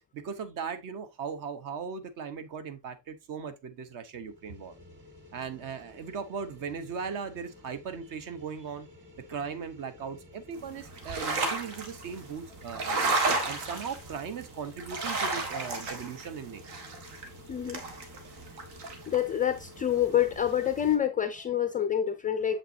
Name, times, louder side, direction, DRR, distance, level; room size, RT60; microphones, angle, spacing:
voice 1, 0.1-4.7 5.3-8.9 9.3-13.2 13.5-16.6, right 6 dB, 50° right, 1.0 m, -38 dB
sound 1, 4.0-21.0, left 2 dB, 25° right, 3.1 m, -53 dB
sound 2, 10.6-20.9, right 3 dB, 75° right, 1.8 m, -34 dB
voice 2, 17.5-17.8 19.1-22.6, left 10 dB, 20° left, 0.3 m, -27 dB
7.4 x 5.6 x 2.7 m
cardioid pair, 165°, 42 cm